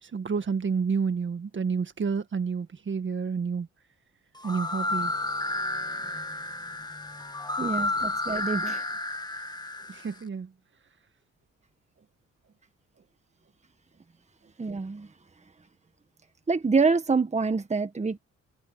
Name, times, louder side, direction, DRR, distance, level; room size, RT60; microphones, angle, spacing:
voice 1, 0.0-3.7 4.4-5.1 7.6-7.7 9.9-10.5, right 5 dB, 40° right, 1.8 m, -29 dB
sound 1, 4.4-10.2, left 2 dB, 15° left, 1.9 m, -31 dB
voice 2, 7.6-8.8 14.6-15.1 16.5-18.2, right 4 dB, 20° right, 1.6 m, -26 dB
cardioid pair, 90°, 30 cm